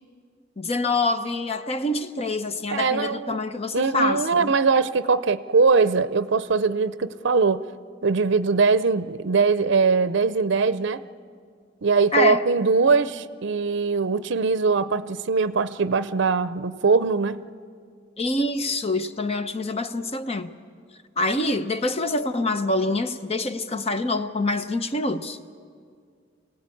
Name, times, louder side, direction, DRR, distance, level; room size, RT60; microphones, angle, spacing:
voice 1, 0.6-4.5 12.1-12.4 18.2-20.5 21.2-25.4, left 2 dB, 30° left, 9 dB, 0.9 m, -26 dB
voice 2, 2.7-3.4 3.7-7.6 8.0-11.0 11.8-17.4, right 4 dB, 65° right, 14 dB, 0.6 m, -21 dB
25.5 x 17.0 x 8.5 m, 2.1 s
head